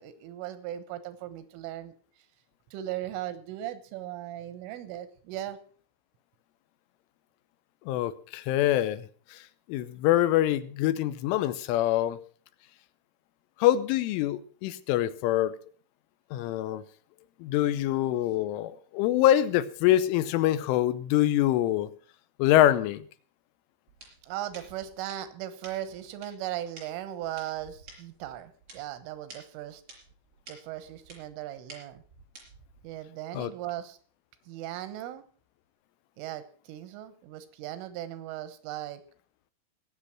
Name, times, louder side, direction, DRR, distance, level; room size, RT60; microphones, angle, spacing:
voice 1, 0.0-1.9 2.7-5.6 24.2-29.8 30.5-32.0 32.8-34.0 34.5-35.2 36.2-39.0, right 12 dB, 90° right, 12 dB, 3.7 m, -38 dB
voice 2, 7.9-9.4 9.7-12.2 13.6-15.6 16.3-16.8 17.4-21.9 22.4-23.0 33.3-33.5, left 13 dB, 90° left, 13 dB, 3.3 m, -25 dB
sound 1, 23.9-32.9, right 3 dB, 30° right, 5.4 m, -52 dB
19.0 x 7.9 x 5.9 m, 0.43 s
omnidirectional pair, 5.6 m